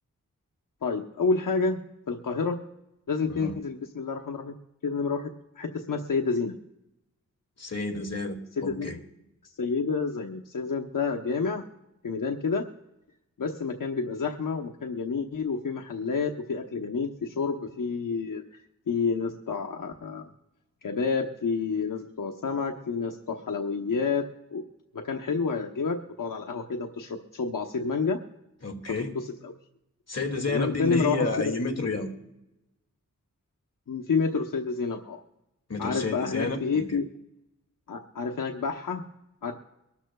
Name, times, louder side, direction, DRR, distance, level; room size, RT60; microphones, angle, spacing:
voice 1, 0.8-2.6 3.1-4.5 4.8-6.5 8.6-8.9 9.4-11.6 12.0-12.7 13.4-20.2 20.8-24.6 24.9-28.2 29.0-29.5 30.5-31.5 33.9-35.2 35.8-37.1 37.9-39.0 39.4-39.5, left 5 dB, 75° left, 1 dB, 1.0 m, -29 dB
voice 2, 7.6-9.0 28.6-29.1 30.1-32.1 35.7-36.8, left 3 dB, 50° left, 2 dB, 2.3 m, -30 dB
24.0 x 13.0 x 2.3 m, 0.91 s
cardioid pair, 50°, 32 cm